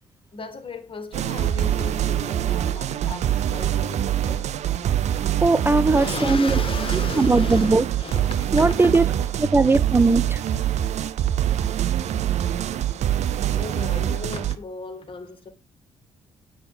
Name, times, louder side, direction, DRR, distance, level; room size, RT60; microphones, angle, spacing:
voice 1, 0.3-4.5 5.9-8.9 13.5-15.5, left 4 dB, 40° left, 2.0 m, -36 dB
sound 1, 1.1-14.6, right 11 dB, 60° right, 0.6 m, -24 dB
voice 2, 5.4-6.6 7.2-7.9 8.5-9.1 9.4-10.4, right 3 dB, 15° right, 0.5 m, -19 dB
8.8 x 5.1 x 4.8 m
hypercardioid pair, 50°, 13 cm